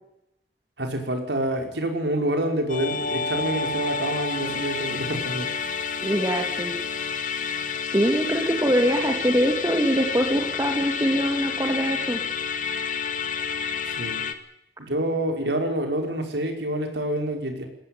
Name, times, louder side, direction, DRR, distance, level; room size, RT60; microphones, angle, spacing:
voice 1, 0.8-5.5 13.9-14.2 14.8-17.7, right 1 dB, 70° right, 4 dB, 5.3 m, -27 dB
Musical instrument, 2.7-14.3, left 6 dB, 50° left, 2.0 m, -29 dB
voice 2, 6.0-6.7 7.8-12.2, equal, 15° right, 3 dB, 2.8 m, -23 dB
21.5 x 17.5 x 9.4 m, 0.82 s
head